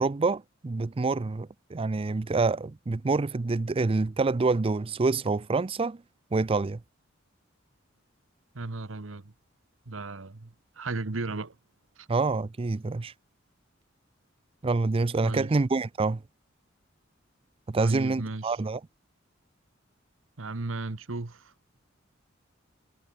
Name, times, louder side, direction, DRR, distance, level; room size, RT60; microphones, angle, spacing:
voice 1, 0.0-6.0 6.3-6.8 12.1-13.1 14.6-16.2 17.7-18.8, right 3 dB, 30° right, 0.5 m, -27 dB
voice 2, 8.5-9.3 9.9-11.5 12.0-12.1 15.2-15.5 17.8-18.6 20.4-21.5, right 3 dB, 80° right, 1.2 m, -35 dB
head